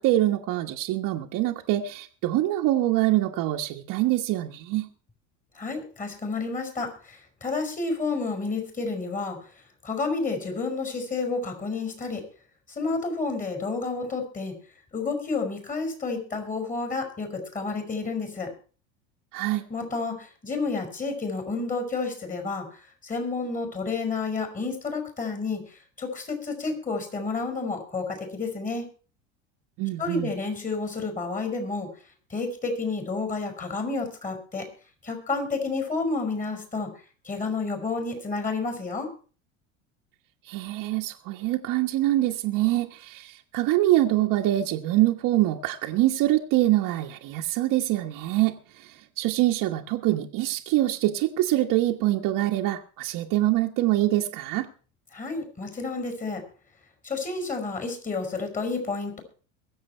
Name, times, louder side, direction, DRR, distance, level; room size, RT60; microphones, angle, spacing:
voice 1, 0.0-4.9 19.3-19.6 29.8-30.3 40.5-54.7, right 15 dB, 55° right, 0 dB, 1.4 m, -24 dB
voice 2, 5.6-9.4 9.8-12.2 12.7-14.5 14.9-18.5 19.7-22.7 23.0-25.6 26.0-28.9 30.0-31.9 32.3-34.7 35.0-36.9 37.2-39.1 55.1-56.4 57.0-59.2, left 3 dB, 20° left, 6 dB, 5.4 m, -30 dB
22.5 x 7.6 x 4.4 m, 0.39 s
supercardioid pair, 95°, 38 cm